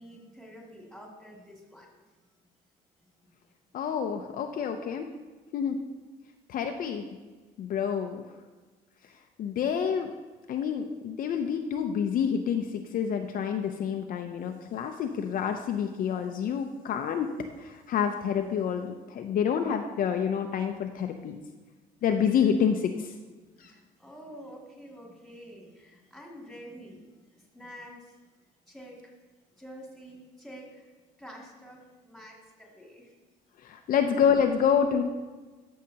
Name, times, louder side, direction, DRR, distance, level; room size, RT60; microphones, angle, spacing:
voice 1, 0.0-1.9 22.4-22.5 23.5-27.0 27.3-28.2 28.7-29.0 29.5-30.9 31.2-33.1, equal, ahead, -2 dB, 2.5 m, -48 dB
voice 2, 3.7-5.1 5.5-5.8 6.5-7.0 7.6-8.2 9.4-10.1 10.5-12.7 12.9-17.3 17.6-21.4 22.0-23.1 23.6-23.7 33.6-35.0, left 7 dB, 55° left, 5 dB, 0.6 m, -28 dB
12.0 x 6.4 x 2.9 m, 1.3 s
cardioid pair, 110°, 17 cm